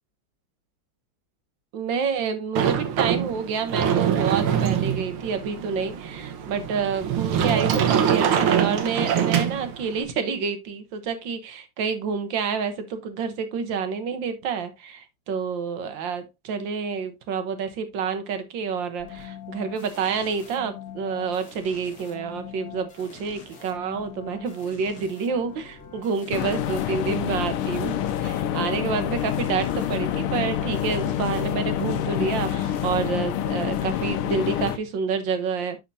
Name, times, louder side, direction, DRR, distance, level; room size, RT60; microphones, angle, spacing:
voice 1, 1.7-35.8, right 5 dB, 65° right, 1.6 m, -28 dB
Sliding door, 2.6-10.0, right 8 dB, 85° right, 1.9 m, -24 dB
sound 1, 19.0-33.6, left 8 dB, 50° left, 2.1 m, -43 dB
sound 2, 26.3-34.8, left 10 dB, 85° left, 1.6 m, -27 dB
10.5 x 4.4 x 2.6 m
omnidirectional pair, 2.3 m